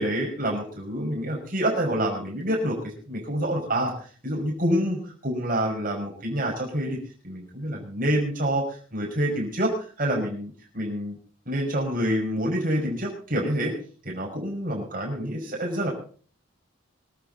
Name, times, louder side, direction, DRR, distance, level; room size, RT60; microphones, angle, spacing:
voice 1, 0.0-7.0 7.2-11.2 11.5-13.7 14.0-15.9, right 1 dB, 40° right, -1 dB, 5.9 m, -27 dB
25.5 x 9.1 x 4.1 m, 0.43 s
head